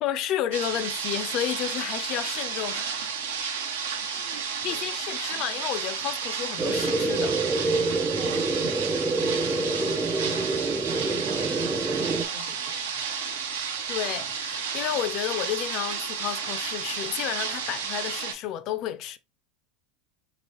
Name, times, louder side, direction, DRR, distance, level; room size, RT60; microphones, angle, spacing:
voice 1, 0.0-3.0 4.6-7.4 13.9-19.2, left 11 dB, 55° left, 0.4 m, -31 dB
sound 1, 0.5-18.3, right 6 dB, 85° right, 0.7 m, -32 dB
voice 2, 3.8-4.9 8.2-8.8 9.1-13.3, right 1 dB, 60° right, 1.0 m, -48 dB
sound 2, 6.6-12.2, right 3 dB, 20° right, 0.4 m, -27 dB
2.9 x 2.9 x 3.0 m
hypercardioid pair, 95°, 0 cm